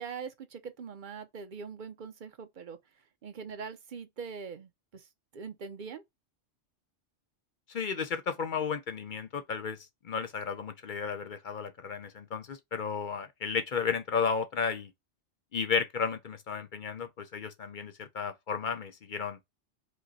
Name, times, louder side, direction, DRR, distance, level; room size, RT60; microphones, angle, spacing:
voice 1, 0.0-2.8 3.2-5.1 5.3-6.0, right 6 dB, 50° right, 0.8 m, -42 dB
voice 2, 7.7-9.8 10.0-14.9 15.5-19.4, left 6 dB, 50° left, 0.6 m, -33 dB
5.1 x 2.1 x 4.1 m
omnidirectional pair, 1.2 m